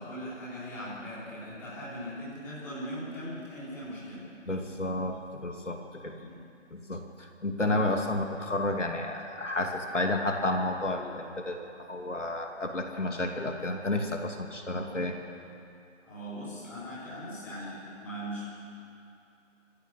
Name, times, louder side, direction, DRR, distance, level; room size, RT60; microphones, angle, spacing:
voice 1, 0.0-4.3 6.1-6.4 14.7-14.9 16.0-18.5, equal, 5° left, -11 dB, 3.6 m, -40 dB
voice 2, 4.5-6.1 6.7-15.2, left 2 dB, 65° left, 2 dB, 2.8 m, -31 dB
27.0 x 15.0 x 8.5 m, 2.6 s
figure-of-eight pair, 160°, 39 cm